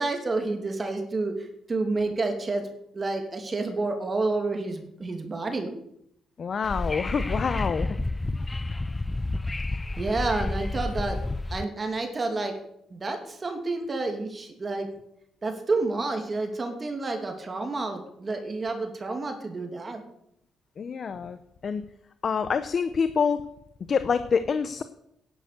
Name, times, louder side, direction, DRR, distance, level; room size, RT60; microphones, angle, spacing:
voice 1, 0.0-2.6 2.9-5.7 10.0-11.2 11.5-12.6 12.9-14.9 15.4-20.0, right 3 dB, 30° right, 5 dB, 2.7 m, -29 dB
voice 2, 6.4-8.0 20.8-21.8 22.2-23.4 23.9-24.8, left 6 dB, 45° left, 11 dB, 0.8 m, -26 dB
Wind / Subway metro underground, 6.6-11.6, left 2 dB, 20° left, 0.5 m, -30 dB
11.0 x 9.7 x 6.8 m, 0.75 s
cardioid pair, 90°, 0 cm